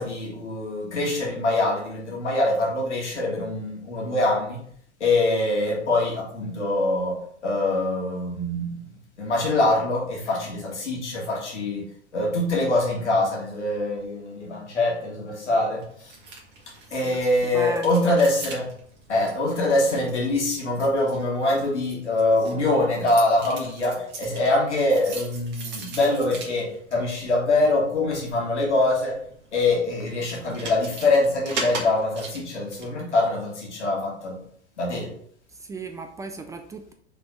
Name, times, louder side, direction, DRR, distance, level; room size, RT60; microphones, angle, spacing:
voice 1, 0.0-4.6 5.0-7.2 7.4-8.7 9.2-16.1 16.9-18.7 19.1-29.2 29.5-34.4 34.8-35.1, left 2 dB, 80° left, -3 dB, 1.8 m, -24 dB
sound 1, 15.8-32.9, right 3 dB, 30° right, 1.7 m, -41 dB
voice 2, 17.5-18.2 35.5-36.9, right 3 dB, 10° right, 6 dB, 0.3 m, -36 dB
5.9 x 3.4 x 5.0 m, 0.62 s
figure-of-eight pair, 95°, 34 cm